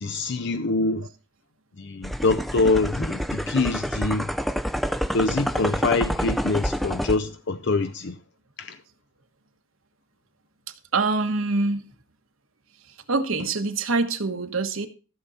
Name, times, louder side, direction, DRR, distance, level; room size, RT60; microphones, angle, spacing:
voice 1, 0.0-1.1 1.8-4.3 5.1-8.2 8.6-8.8, left 3 dB, 55° left, 0.6 m, -25 dB
sound 1, 2.0-7.2, equal, ahead, 0.4 m, -28 dB
voice 2, 10.9-11.8 13.1-14.9, right 3 dB, 70° right, 1.4 m, -24 dB
14.5 x 7.0 x 4.1 m
head